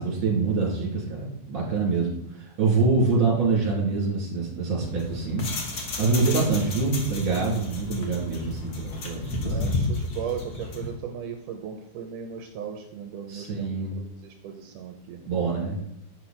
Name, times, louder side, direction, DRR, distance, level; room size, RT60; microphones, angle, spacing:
voice 1, 0.0-5.5 6.0-9.6 13.3-13.9 15.2-15.8, right 4 dB, 40° right, -3 dB, 3.6 m, -25 dB
sound 1, 4.8-10.9, left 2 dB, 65° left, 1.0 m, -32 dB
voice 2, 9.4-15.2, right 7 dB, 80° right, 4 dB, 2.3 m, -37 dB
8.6 x 5.5 x 4.3 m, 0.78 s
omnidirectional pair, 3.7 m